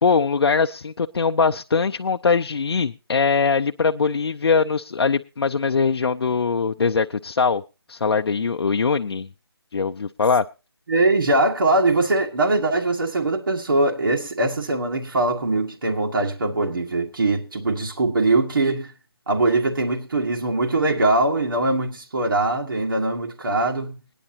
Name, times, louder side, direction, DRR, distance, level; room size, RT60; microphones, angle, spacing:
voice 1, 0.0-7.6 7.9-9.3 9.7-10.4, left 5 dB, 70° left, 0.5 m, -21 dB
voice 2, 10.9-18.9 19.3-24.0, right 2 dB, 55° right, 1.9 m, -22 dB
21.0 x 9.9 x 2.8 m
hypercardioid pair, 170°, 13 cm